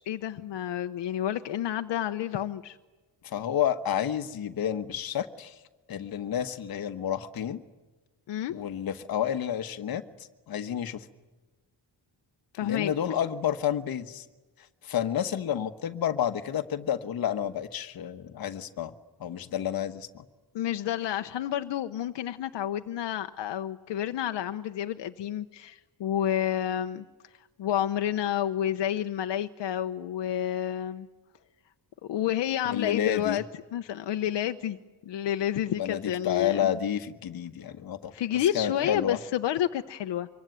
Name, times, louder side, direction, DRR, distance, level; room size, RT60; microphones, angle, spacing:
voice 1, 0.0-2.8 8.3-8.5 12.5-12.9 20.5-27.0 27.6-31.1 32.0-33.4 33.7-34.8 35.1-36.7 38.1-40.3, left 11 dB, 80° left, 8 dB, 0.9 m, -30 dB
voice 2, 3.2-5.5 5.9-7.6 8.5-10.0 10.5-11.1 12.6-14.2 14.8-18.9 19.2-20.2 32.6-33.4 35.8-38.1 38.5-39.2, left 9 dB, 55° left, 8 dB, 1.2 m, -30 dB
25.5 x 23.5 x 9.3 m, 1.2 s
wide cardioid pair, 180°, 42 cm